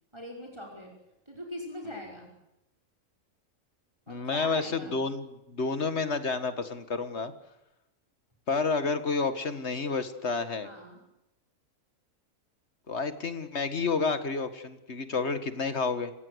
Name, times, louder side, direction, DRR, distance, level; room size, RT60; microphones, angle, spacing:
voice 1, 0.1-0.9 1.3-2.3 4.1-5.0 10.6-11.0, left 1 dB, 20° right, 0 dB, 5.7 m, -42 dB
voice 2, 4.1-7.3 8.5-10.7 12.9-16.1, left 4 dB, 55° left, 10 dB, 2.1 m, -30 dB
29.5 x 16.5 x 8.1 m, 0.91 s
omnidirectional pair, 1.4 m